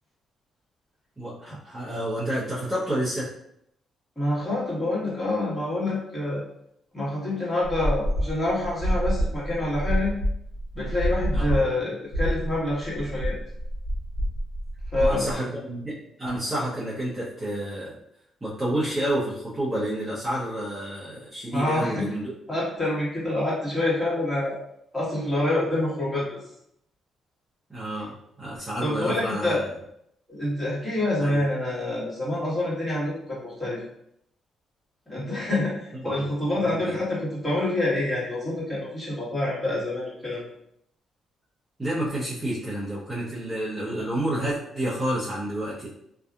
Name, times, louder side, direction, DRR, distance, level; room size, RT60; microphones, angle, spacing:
voice 1, 1.2-3.3 11.3-11.6 14.9-15.9 16.2-17.9 18.4-22.3 27.7-29.6 31.2-31.4 35.9-36.1 36.6-37.0 41.8-45.9, right 1 dB, 15° right, -10 dB, 0.8 m, -29 dB
voice 2, 4.1-6.4 6.9-10.1 10.7-13.4 14.9-15.3 21.5-22.1 22.5-24.6 24.9-26.5 28.0-28.1 28.8-29.6 30.3-33.8 35.1-40.4, left 1 dB, 10° left, -8 dB, 1.5 m, -27 dB
sound 1, 7.6-11.6 12.1-15.3, equal, 60° left, 1.0 m, -27 dB
2.7 x 2.3 x 2.4 m, 0.75 s
cardioid pair, 90°, 0 cm